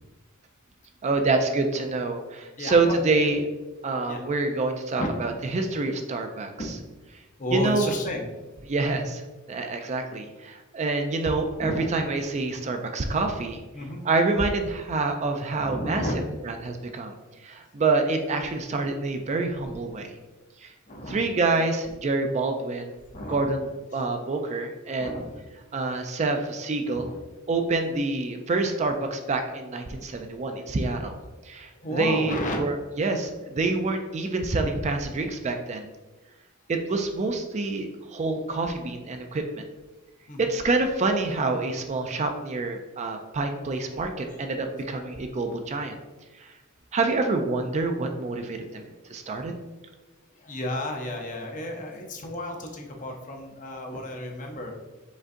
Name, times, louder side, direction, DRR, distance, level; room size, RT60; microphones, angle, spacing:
voice 1, 1.0-3.4 3.8-6.7 7.5-7.9 8.7-9.2 9.5-13.6 14.0-16.1 16.4-17.1 17.4-20.1 20.6-20.7 21.1-22.9 23.3-25.2 25.7-27.1 27.5-31.2 31.4-35.9 36.7-39.6 40.4-46.0 46.4-46.5 46.9-49.5, right 3 dB, 35° right, 5 dB, 0.4 m, -27 dB
voice 2, 2.6-3.0 4.1-4.2 5.0-5.1 6.6-6.8 7.4-8.2 11.6-11.9 13.7-14.1 15.6-16.2 20.9-21.2 23.1-23.5 25.0-25.4 26.9-27.2 30.4-30.5 31.8-32.6 40.3-40.5 44.2-44.4 50.4-54.7, left 1 dB, 40° left, 2 dB, 0.7 m, -32 dB
5.1 x 3.7 x 2.6 m, 1.2 s
head